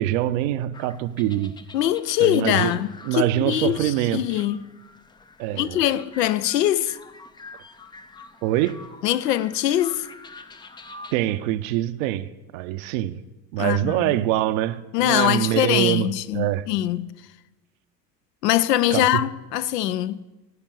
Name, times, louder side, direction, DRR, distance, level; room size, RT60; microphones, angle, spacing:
voice 1, 0.0-1.5 2.2-2.7 3.0-4.4 5.4-5.8 8.4-8.8 11.1-13.2 13.5-16.6 18.9-19.2, right 14 dB, 55° right, 0.7 m, -24 dB
sound 1, 0.7-11.2, left 3 dB, 10° left, 0.4 m, -46 dB
voice 2, 1.7-4.6 5.5-7.0 9.0-10.1 13.6-14.2 14.9-17.1 18.4-20.3, left 13 dB, 70° left, 0.6 m, -23 dB
16.0 x 5.3 x 6.8 m
figure-of-eight pair, 70°, 49 cm